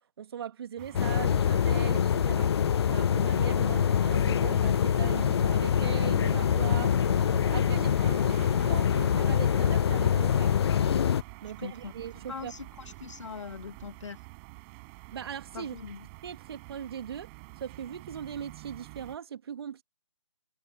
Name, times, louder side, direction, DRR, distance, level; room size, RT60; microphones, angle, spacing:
voice 1, 0.2-2.5 2.9-7.0 7.5-8.4 8.6-10.5 11.4-12.5 15.1-15.8 16.2-17.3 17.6-19.8, right 8 dB, 55° right, 2.8 m, -39 dB
sound 1, 0.8-19.2, right 30 dB, 25° right, 7.8 m, -47 dB
sound 2, 0.9-11.2, left 8 dB, 55° left, 0.4 m, -25 dB
voice 2, 11.6-14.2 15.5-16.1, left 5 dB, 75° left, 2.6 m, -42 dB
hypercardioid pair, 145°, 16 cm